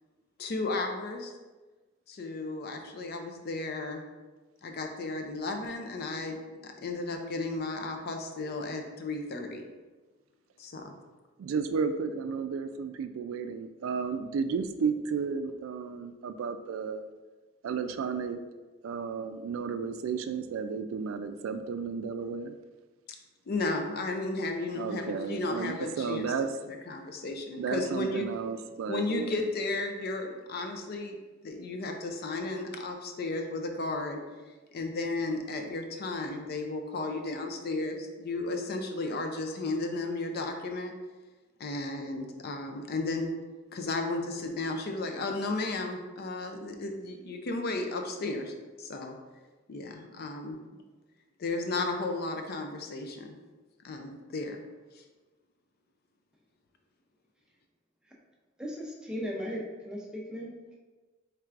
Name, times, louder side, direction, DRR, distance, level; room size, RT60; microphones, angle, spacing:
voice 1, 0.4-1.3 2.1-4.0 4.6-6.4 6.6-9.6 10.6-10.9 23.5-26.3 26.6-28.3 28.9-31.2 31.4-34.2 34.7-40.9 41.6-43.3 43.7-49.2 49.7-50.6 51.4-53.3 53.8-54.6 54.9-55.0, left 2 dB, 50° left, 4 dB, 0.4 m, -34 dB
voice 2, 11.4-17.0 17.6-18.4 18.8-22.5 24.8-26.5 27.6-29.4, right 5 dB, 80° right, 9 dB, 0.3 m, -33 dB
voice 3, 58.6-60.7, equal, 5° right, -3 dB, 0.5 m, -37 dB
4.5 x 3.3 x 2.4 m, 1.3 s
head